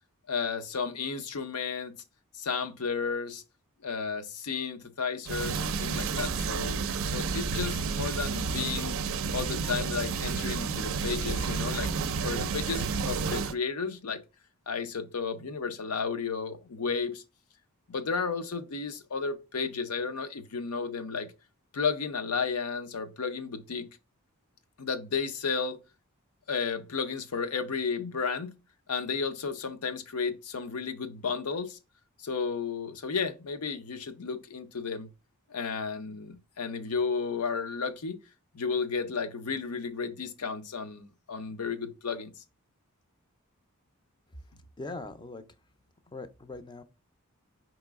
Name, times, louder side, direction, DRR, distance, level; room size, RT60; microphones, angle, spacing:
voice 1, 0.3-2.0 2.3-3.4 3.8-9.0 9.3-11.9 12.2-14.2 14.7-17.2 17.9-21.3 21.7-23.9 24.8-25.8 26.5-28.5 28.9-31.8 32.2-35.1 35.5-38.2 38.5-42.3, left 5 dB, 85° left, 0.7 m, -33 dB
sound 1, 5.3-13.5, right 5 dB, 65° right, 0.4 m, -31 dB
voice 2, 44.8-45.4 46.1-46.8, left 2 dB, 20° left, 0.4 m, -40 dB
4.7 x 3.0 x 3.5 m
head